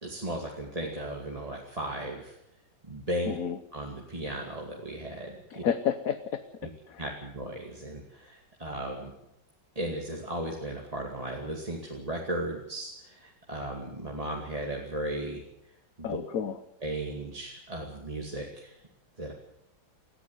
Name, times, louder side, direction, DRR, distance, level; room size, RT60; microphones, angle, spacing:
voice 1, 0.0-2.4 2.8-3.4 3.7-5.6 7.0-9.1 9.8-15.4 16.0-16.2 16.8-18.8 19.2-19.3, right 1 dB, 20° right, -1 dB, 2.5 m, -36 dB
voice 2, 3.3-3.6 5.5-6.4 6.9-7.0 16.0-16.5, left 8 dB, 55° left, 11 dB, 1.2 m, -30 dB
20.0 x 14.5 x 9.5 m, 0.84 s
omnidirectional pair, 2.1 m